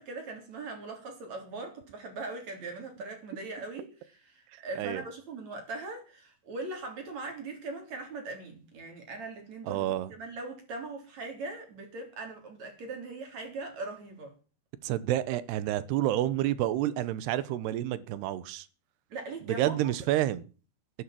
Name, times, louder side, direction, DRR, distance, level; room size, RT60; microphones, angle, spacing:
voice 1, 0.0-14.3 19.1-19.9, right 3 dB, 40° right, 4.5 m, -40 dB
voice 2, 9.7-10.1 14.8-18.7 19.4-20.4, right 13 dB, 75° right, 2.9 m, -29 dB
11.5 x 11.0 x 7.6 m
omnidirectional pair, 5.0 m